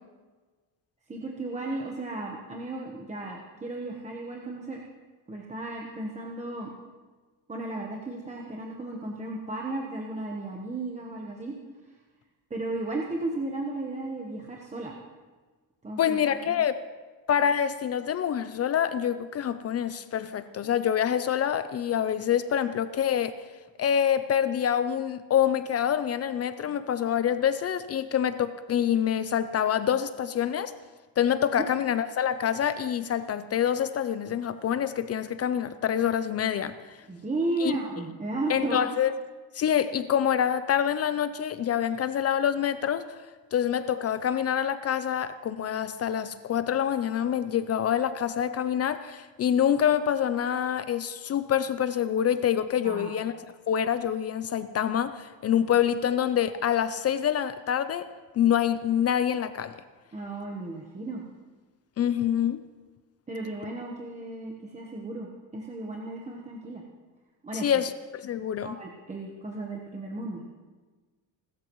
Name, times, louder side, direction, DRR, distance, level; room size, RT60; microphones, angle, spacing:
voice 1, 1.1-4.8 5.3-6.7 7.5-11.5 12.5-15.0 15.8-16.4 31.5-31.6 37.1-38.9 52.8-53.1 60.1-61.2 63.3-66.8 67.4-67.7 68.6-70.4, right 2 dB, 15° right, -1 dB, 1.1 m, -34 dB
voice 2, 16.0-16.8 17.3-23.4 23.8-30.7 31.2-36.7 37.6-37.7 38.5-39.1 39.5-43.1 43.5-53.3 53.7-58.1 58.4-59.8 62.0-62.6 67.5-68.8, left 9 dB, 35° left, 12 dB, 0.4 m, -26 dB
30.0 x 13.5 x 3.1 m, 1.3 s
cardioid pair, 170°, 43 cm